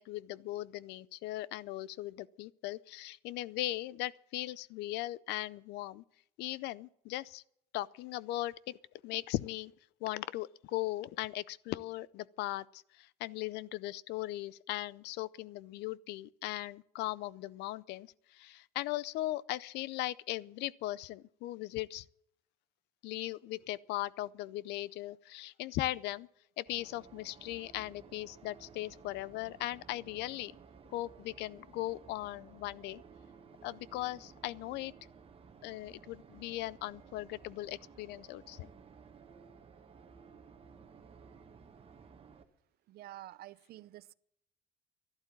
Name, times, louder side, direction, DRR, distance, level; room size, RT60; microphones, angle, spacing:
voice 1, 0.0-6.0 6.4-7.4 7.7-8.8 9.0-9.7 10.0-22.0 23.0-26.3 26.6-30.5 30.9-33.0 33.6-34.9 35.6-38.7, left 16 dB, 85° left, 0.5 m, -38 dB
sound 1, 26.7-42.4, right 6 dB, 35° right, 1.5 m, -56 dB
voice 2, 42.9-44.1, right 14 dB, 65° right, 0.6 m, -49 dB
12.0 x 11.5 x 7.3 m
cardioid pair, 110°, 17 cm